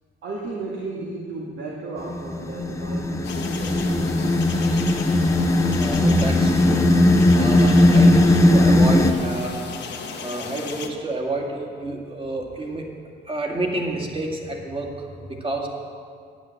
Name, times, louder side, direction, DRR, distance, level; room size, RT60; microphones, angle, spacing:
voice 1, 0.2-4.4, right 3 dB, 70° right, -3 dB, 2.0 m, -34 dB
sound 1, 2.0-9.1, left 1 dB, 15° left, 0.9 m, -18 dB
sound 2, 3.2-10.9, left 5 dB, 60° left, 1.3 m, -35 dB
voice 2, 5.8-6.9 7.3-9.6 10.2-12.9 13.3-15.7, right 2 dB, 25° right, 1 dB, 2.3 m, -29 dB
10.5 x 9.5 x 7.7 m, 2.2 s
cardioid pair, 90°, 20 cm